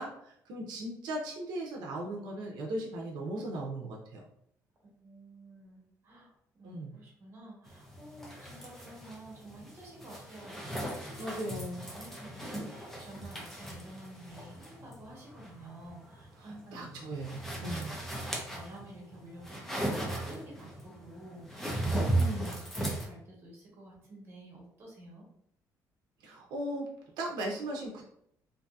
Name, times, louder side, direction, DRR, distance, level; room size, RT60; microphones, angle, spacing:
voice 1, 0.0-4.2 6.6-6.9 11.2-11.9 16.4-17.9 22.1-22.6 26.2-26.9 27.2-28.0, right 1 dB, 90° right, -1 dB, 0.5 m, -38 dB
voice 2, 4.8-11.4 11.8-16.9 18.2-22.2 22.7-25.2, right 1 dB, 35° right, -2 dB, 1.0 m, -50 dB
sound 1, 7.7-23.1, right 1 dB, 5° left, 0.5 m, -37 dB
2.6 x 2.6 x 2.3 m, 0.72 s
cardioid pair, 160°, 7 cm